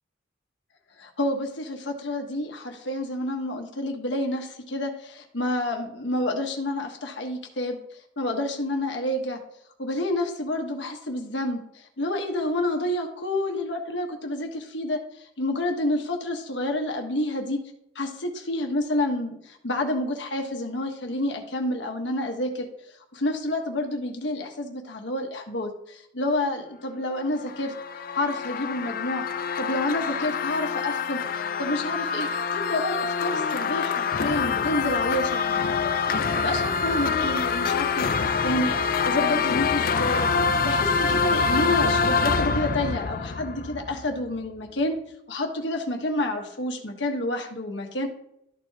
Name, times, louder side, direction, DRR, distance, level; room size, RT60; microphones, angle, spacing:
voice 1, 1.0-7.8 8.2-9.4 9.8-17.6 17.9-22.7 23.1-27.7 28.1-29.2 29.6-35.9 36.3-45.0 45.3-48.1, left 1 dB, 70° left, 2 dB, 1.4 m, -29 dB
sound 1, 27.2-44.2, left 5 dB, 50° left, 0.4 m, -26 dB
13.0 x 4.7 x 2.9 m, 0.75 s
head